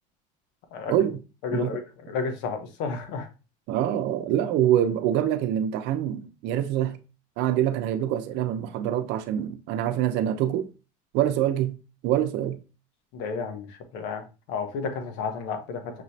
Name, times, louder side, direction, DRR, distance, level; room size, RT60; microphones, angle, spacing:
voice 1, 0.9-1.2 1.5-1.8 3.7-7.0 7.4-10.7 11.1-11.8 12.0-12.6, right 11 dB, 65° right, 0.7 m, -25 dB
voice 2, 1.4-1.8 2.1-3.3 13.1-13.7 13.9-14.2 14.5-15.8, left 5 dB, 70° left, 1.1 m, -31 dB
6.2 x 3.0 x 2.7 m
cardioid pair, 125°, 19 cm